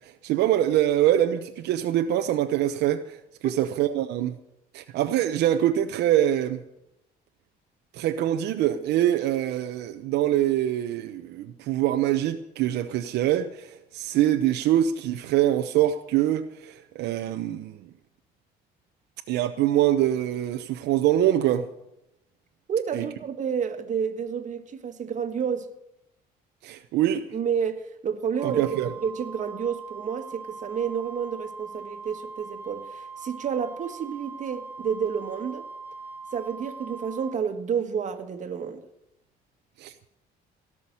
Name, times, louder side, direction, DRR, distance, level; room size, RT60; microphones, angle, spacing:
voice 1, 0.0-4.4 4.7-6.6 7.9-17.8 19.3-21.7 22.9-23.1 26.6-27.3 28.4-28.9 39.8-40.1, right 12 dB, 80° right, 0.9 m, -24 dB
voice 2, 22.7-25.7 27.3-28.6 29.0-35.7 36.3-38.9, right 7 dB, 45° right, 1.6 m, -30 dB
Wind instrument woodwind instrument, 28.4-37.4, right 4 dB, 15° right, 0.9 m, -41 dB
18.0 x 6.2 x 9.8 m
cardioid pair, 110°, 17 cm